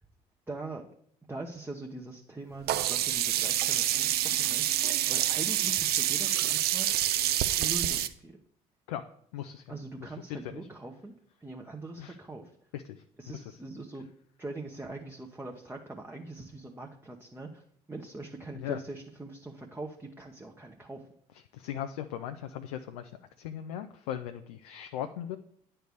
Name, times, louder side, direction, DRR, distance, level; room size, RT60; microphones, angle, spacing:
voice 1, 0.5-0.8 1.3-4.6 5.0-6.9 7.6-8.3 9.7-11.1 11.4-12.5 13.2-14.1 14.4-17.6 17.9-21.1, right 2 dB, 10° right, 1 dB, 0.9 m, -42 dB
Sink (filling or washing), 2.7-8.1, right 12 dB, 50° right, 0.5 m, -27 dB
voice 2, 9.3-9.7 10.0-10.6 12.0-12.2 12.7-13.5 18.5-18.8 21.5-23.1 23.4-25.4, left 10 dB, 75° left, 7 dB, 0.4 m, -38 dB
9.0 x 3.4 x 6.7 m, 0.66 s
figure-of-eight pair, 50°, 20 cm